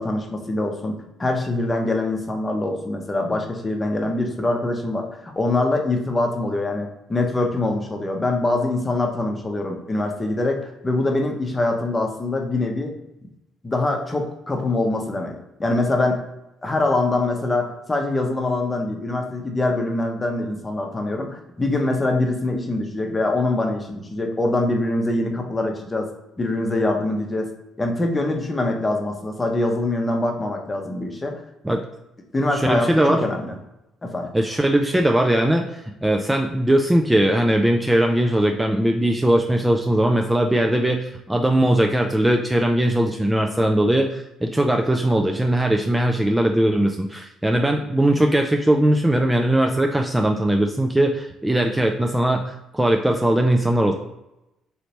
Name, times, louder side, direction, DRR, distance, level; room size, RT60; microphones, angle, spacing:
voice 1, 0.0-12.9 13.2-13.3 13.6-15.3 15.6-16.2 16.6-26.1 26.4-27.5 27.8-31.4 32.3-33.6 34.0-34.3, left 2 dB, 25° left, 2 dB, 0.8 m, -24 dB
voice 2, 32.5-33.2 34.3-53.9, right 1 dB, 10° right, 3 dB, 0.4 m, -20 dB
3.2 x 2.9 x 2.8 m, 0.90 s
hypercardioid pair, 50°, 0 cm